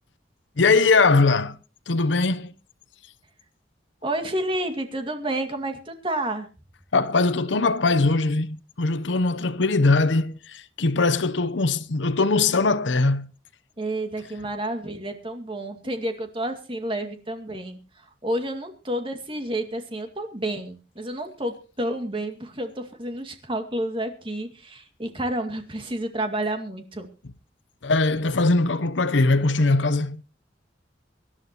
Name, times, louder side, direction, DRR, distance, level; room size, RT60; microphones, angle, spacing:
voice 1, 0.6-1.6 1.9-2.5 6.9-13.3 27.8-30.2, left 3 dB, 90° left, 0.8 m, -21 dB
voice 2, 4.0-6.5 13.8-27.1, right 1 dB, 30° right, 2.2 m, -30 dB
24.5 x 11.5 x 3.0 m
head